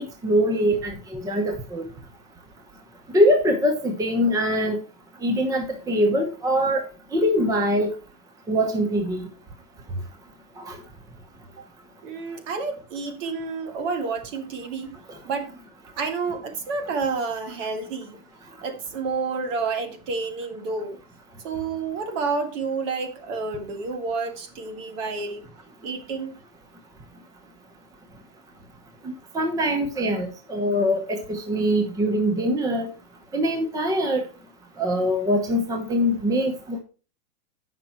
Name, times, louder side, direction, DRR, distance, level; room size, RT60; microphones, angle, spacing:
voice 1, 0.0-1.9 3.1-4.8 5.2-6.8 7.1-7.9 8.5-9.3 10.6-10.8 29.0-32.9 33.3-34.3 34.8-36.8, equal, 10° right, 0.9 m, -23 dB
voice 2, 12.0-15.0 15.2-15.5 16.0-18.2 18.6-21.0 21.4-25.5 25.8-26.4, right 4 dB, 55° right, 2.1 m, -29 dB
9.0 x 5.9 x 4.5 m
hypercardioid pair, 135°, 46 cm